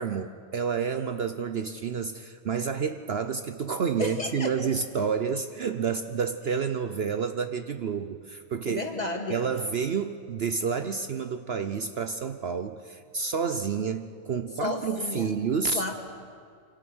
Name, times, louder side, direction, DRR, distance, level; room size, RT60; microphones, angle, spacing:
voice 1, 0.0-8.8 9.3-15.8, right 6 dB, 55° right, 9 dB, 1.0 m, -29 dB
voice 2, 4.0-4.5 8.6-9.4 14.6-15.3 15.7-16.0, left 2 dB, 30° left, 3 dB, 2.3 m, -32 dB
27.0 x 25.5 x 6.3 m, 2.2 s
omnidirectional pair, 1.4 m